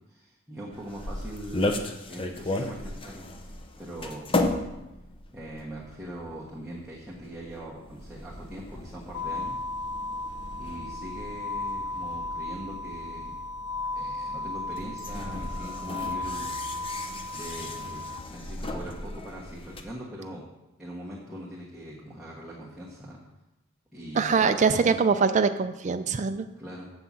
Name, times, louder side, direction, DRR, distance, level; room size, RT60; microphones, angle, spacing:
voice 1, 0.1-1.8 2.1-4.3 5.3-9.6 10.6-13.4 13.9-16.5 17.3-18.0 18.3-20.4 20.8-23.2 23.9-25.0 26.6-26.9, equal, ahead, -8 dB, 1.3 m, -41 dB
sound 1, 0.7-19.8, left 2 dB, 25° left, 0.6 m, -36 dB
sound 2, 9.1-18.2, left 2 dB, 80° left, 0.4 m, -35 dB
voice 2, 24.2-26.5, right 5 dB, 35° right, 8 dB, 0.4 m, -23 dB
7.0 x 5.8 x 7.4 m, 0.97 s
head